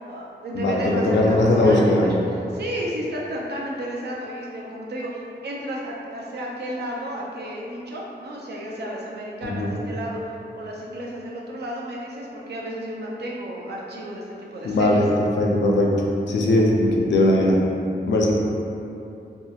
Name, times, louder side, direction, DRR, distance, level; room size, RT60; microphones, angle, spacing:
voice 1, 0.0-10.2 10.5-14.3 14.5-15.0, equal, 70° right, -3 dB, 0.5 m, -32 dB
voice 2, 0.5-2.1 9.4-9.7 14.6-15.9 16.3-17.6 18.1-18.3, left 1 dB, 90° left, -2 dB, 0.4 m, -19 dB
2.8 x 2.4 x 2.3 m, 2.7 s
wide cardioid pair, 85°, 18 cm